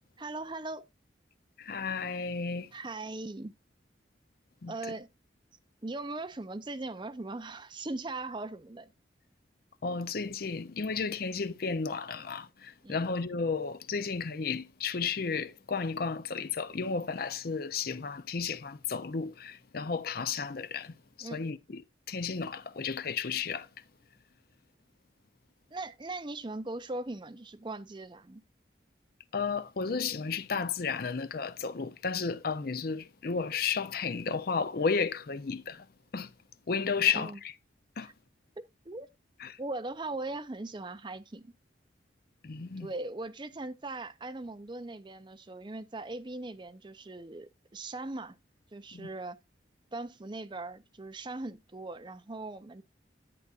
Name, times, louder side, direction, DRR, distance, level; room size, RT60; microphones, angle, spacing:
voice 1, 0.2-0.8 2.7-3.5 4.7-5.1 5.8-8.9 12.8-13.0 21.2-21.4 25.7-28.4 37.1-37.4 38.0-38.1 38.8-39.1 39.6-41.5 42.8-48.4 48.7-49.4 49.9-52.8, right 2 dB, 25° right, 0.6 m, -39 dB
voice 2, 1.6-2.7 4.6-4.7 9.8-21.8 22.1-23.7 29.3-35.9 36.1-36.3 36.7-37.5 38.0-38.1 39.4-39.6 42.4-42.9 48.9-49.1, left 5 dB, 50° left, 0.6 m, -33 dB
11.0 x 8.1 x 2.4 m
head